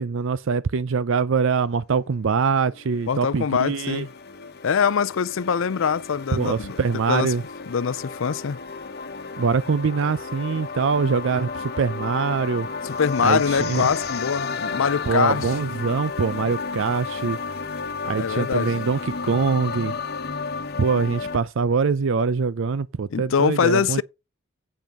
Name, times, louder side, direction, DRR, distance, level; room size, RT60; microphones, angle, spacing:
voice 1, 0.0-4.1 6.3-7.4 9.4-12.7 13.2-13.9 15.1-17.4 18.0-19.9 20.8-24.0, right 5 dB, 70° right, 0.5 m, -23 dB
sound 1, 2.1-21.4, left 4 dB, 50° left, 1.1 m, -33 dB
voice 2, 3.1-4.1 4.6-6.8 7.1-7.3 7.7-8.6 12.8-15.5 18.2-18.7 23.1-24.0, left 6 dB, 70° left, 0.5 m, -23 dB
8.6 x 5.9 x 5.4 m
head